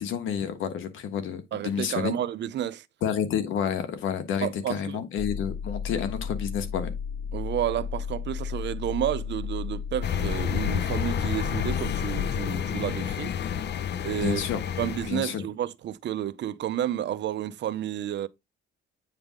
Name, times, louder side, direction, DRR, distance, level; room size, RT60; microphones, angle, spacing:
voice 1, 0.0-2.1 3.0-6.9 14.2-14.6 15.1-15.4, left 8 dB, 80° left, 1.3 m, -29 dB
voice 2, 1.5-2.8 4.4-5.0 7.3-13.3 14.0-14.4 14.8-18.3, right 11 dB, 65° right, 0.6 m, -31 dB
sound 1, 5.2-12.5, left 6 dB, 30° left, 3.0 m, -34 dB
sound 2, 10.0-15.1, left 9 dB, 60° left, 0.6 m, -30 dB
9.0 x 3.4 x 3.7 m
cardioid pair, 90°, 20 cm